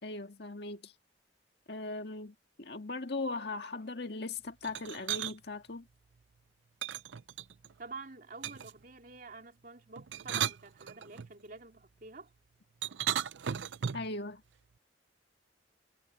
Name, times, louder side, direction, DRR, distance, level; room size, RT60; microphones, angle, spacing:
voice 1, 0.0-0.9 1.7-5.9 13.9-14.4, left 3 dB, 60° left, 2.0 m, -39 dB
sound 1, 4.6-5.3 6.8-7.7 8.4-8.8 10.0-11.3 12.8-14.1, right 9 dB, 80° right, 0.6 m, -35 dB
voice 2, 7.8-12.3, right 3 dB, 50° right, 3.2 m, -48 dB
head